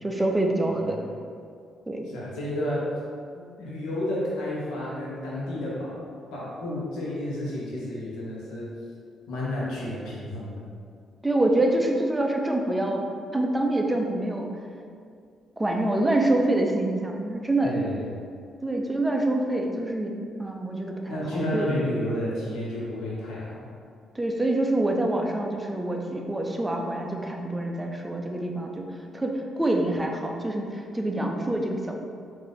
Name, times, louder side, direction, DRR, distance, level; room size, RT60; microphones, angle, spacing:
voice 1, 0.0-1.0 1.9-2.1 11.2-13.0 13.3-14.5 15.6-17.7 18.6-21.7 24.1-32.0, right 1 dB, 10° right, 2 dB, 0.5 m, -26 dB
voice 2, 2.1-2.9 3.3-6.0 6.3-8.7 9.3-10.6 17.6-18.3 21.1-23.7, left 1 dB, 85° left, -6 dB, 1.0 m, -31 dB
3.8 x 2.7 x 3.8 m, 2.3 s
cardioid pair, 90°, 0 cm